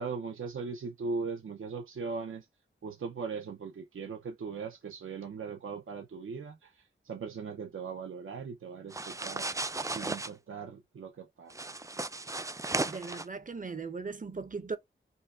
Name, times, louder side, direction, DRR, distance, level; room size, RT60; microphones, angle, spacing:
voice 1, 0.0-2.5 2.8-9.5 9.9-11.7, right 5 dB, 80° right, 0.6 m, -39 dB
sound 1, 8.9-10.3 11.5-13.3, right 2 dB, 15° right, 0.3 m, -35 dB
voice 2, 12.9-14.8, right 4 dB, 40° right, 0.7 m, -38 dB
5.4 x 2.2 x 2.4 m
wide cardioid pair, 70°, 21 cm